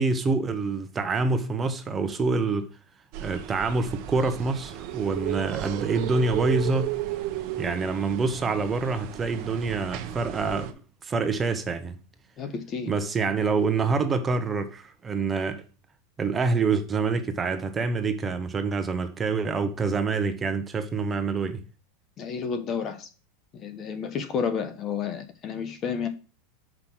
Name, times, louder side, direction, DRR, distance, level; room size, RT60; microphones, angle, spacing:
voice 1, 0.0-2.7 3.2-7.0 7.6-10.7 11.0-12.0 12.9-15.6 16.2-21.6, right 4 dB, 20° right, 1.0 m, -26 dB
sound 1, 3.1-10.7, right 13 dB, 55° right, 1.0 m, -34 dB
voice 2, 12.4-12.9 22.2-23.1 23.5-26.1, left 6 dB, 35° left, 1.1 m, -31 dB
6.3 x 5.2 x 6.2 m
supercardioid pair, 125°, 0 cm